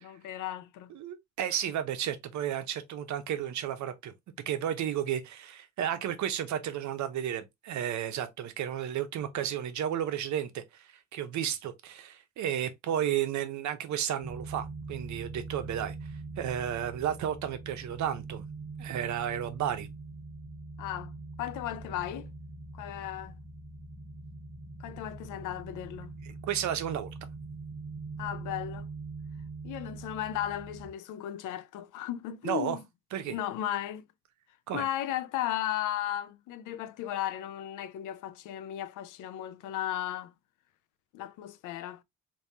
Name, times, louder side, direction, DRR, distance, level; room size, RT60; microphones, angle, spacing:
voice 1, 0.0-0.9 20.8-22.3 22.7-23.4 24.8-26.1 28.2-28.9 29.6-32.8 33.3-34.0 34.7-40.3 41.1-42.0, left 12 dB, 85° left, 0.5 m, -35 dB
voice 2, 0.9-4.1 4.5-15.9 16.4-18.4 18.8-19.9 26.2-27.1 32.4-32.8 33.1-33.4 34.7-34.9, right 10 dB, 70° right, 0.7 m, -33 dB
sound 1, 14.2-30.9, right 3 dB, 15° right, 0.9 m, -43 dB
3.4 x 2.7 x 2.7 m
cardioid pair, 90°, 30 cm